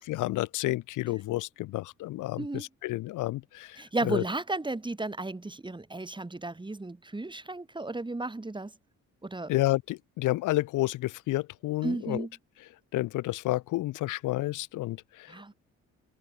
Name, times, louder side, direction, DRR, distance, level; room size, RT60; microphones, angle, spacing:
voice 1, 0.1-4.2 9.5-12.2 12.9-15.5, left 17 dB, 90° left, 1.2 m, -30 dB
voice 2, 2.4-2.7 3.8-8.7 9.2-9.5 11.8-12.3 15.3-15.5, right 2 dB, 15° right, 4.6 m, -34 dB
cardioid pair, 90°, 30 cm